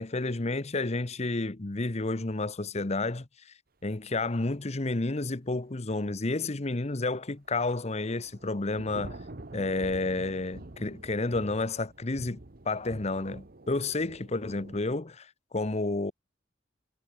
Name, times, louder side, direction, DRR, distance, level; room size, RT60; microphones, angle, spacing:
voice 1, 0.0-3.5 3.8-9.2 9.5-12.4 12.6-16.1, left 2 dB, 40° left, 1.0 m, -31 dB
Thunder / Rain, 7.5-14.8, right 2 dB, 55° right, 1.3 m, -46 dB
head